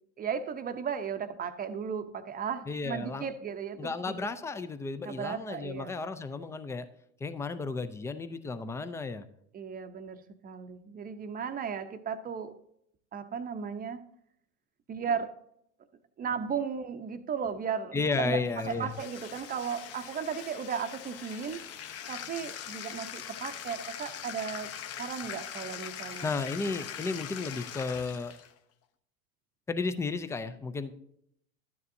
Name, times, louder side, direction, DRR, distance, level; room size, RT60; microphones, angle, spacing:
voice 1, 0.2-4.2 5.0-5.9 9.5-12.6 13.1-14.1 14.9-15.3 16.2-21.7 22.1-24.7 25.0-26.3, right 7 dB, 20° right, 0.7 m, -35 dB
voice 2, 2.7-3.3 3.8-6.9 7.2-9.3 17.9-19.0 26.2-28.4 29.7-31.0, left 4 dB, 5° left, 0.4 m, -33 dB
Bathtub (filling or washing), 18.5-28.5, left 9 dB, 35° left, 0.9 m, -42 dB
12.5 x 9.6 x 2.7 m
hypercardioid pair, 105°, 41 cm